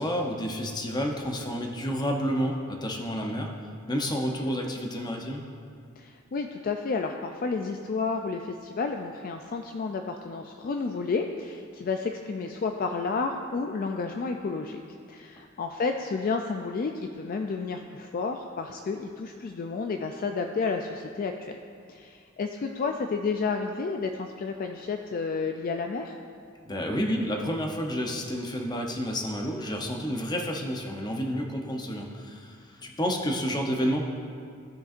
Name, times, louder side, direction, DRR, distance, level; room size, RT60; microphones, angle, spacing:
voice 1, 0.0-3.5 3.9-5.4 26.6-34.0, equal, 20° left, 1 dB, 0.7 m, -30 dB
voice 2, 6.0-14.8 15.1-21.6 21.9-26.2, left 4 dB, 45° left, 4 dB, 0.3 m, -31 dB
15.0 x 5.2 x 2.5 m, 2.3 s
head